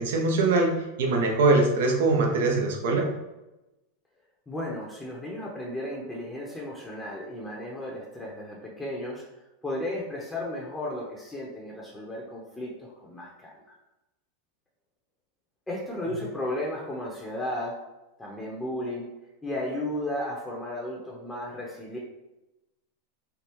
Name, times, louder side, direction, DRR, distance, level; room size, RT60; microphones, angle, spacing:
voice 1, 0.0-3.1, right 3 dB, 75° right, 1 dB, 0.7 m, -23 dB
voice 2, 4.5-9.2 9.6-13.8 15.7-17.7 18.2-19.1 19.4-22.0, left 1 dB, 10° left, -3 dB, 0.7 m, -34 dB
3.4 x 2.4 x 2.9 m, 0.97 s
hypercardioid pair, 100°, 0 cm